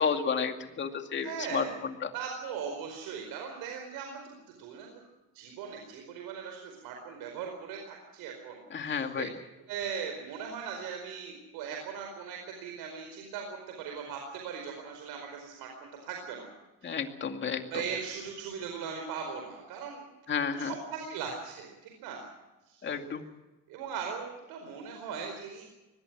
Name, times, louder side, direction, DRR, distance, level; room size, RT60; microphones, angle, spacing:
voice 1, 0.0-1.6 2.0-2.1 8.7-9.3 16.8-17.7 20.3-20.7 22.8-23.2, left 6 dB, 30° left, 5 dB, 2.4 m, -31 dB
voice 2, 1.2-1.8 2.1-4.9 5.3-9.2 9.7-16.5 16.8-17.0 17.7-20.1 20.3-22.3 22.6-23.3 23.7-25.6, right 6 dB, 80° right, 3 dB, 4.8 m, -39 dB
24.0 x 20.0 x 6.1 m, 1.1 s
cardioid pair, 135°, 36 cm